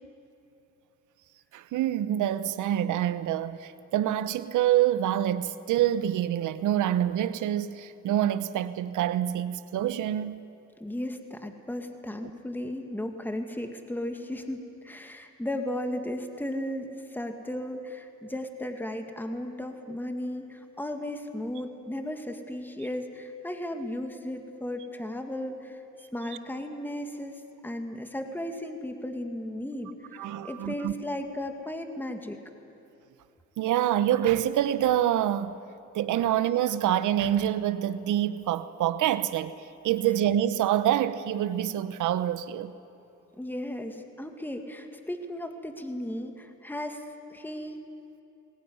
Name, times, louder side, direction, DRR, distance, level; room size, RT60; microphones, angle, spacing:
voice 1, 1.5-10.4 30.1-30.9 33.6-35.5 35.9-39.5 39.8-42.7, right 11 dB, 80° right, 1.1 m, -26 dB
voice 2, 10.8-25.8 26.1-32.4 43.4-47.0 47.3-47.8, left 1 dB, 5° left, 2.0 m, -35 dB
21.5 x 18.5 x 9.6 m
cardioid pair, 90°, 30 cm